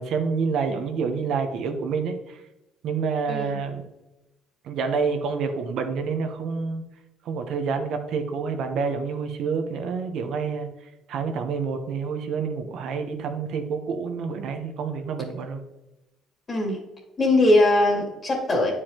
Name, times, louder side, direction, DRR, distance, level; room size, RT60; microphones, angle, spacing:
voice 1, 0.0-2.4 2.8-3.8 4.6-6.8 7.2-10.7 11.1-15.6, right 5 dB, 65° right, 6 dB, 0.9 m, -28 dB
voice 2, 16.5-16.8 17.2-18.7, left 2 dB, 30° left, 0 dB, 2.4 m, -20 dB
9.7 x 4.8 x 2.9 m, 0.97 s
cardioid pair, 110°, 0 cm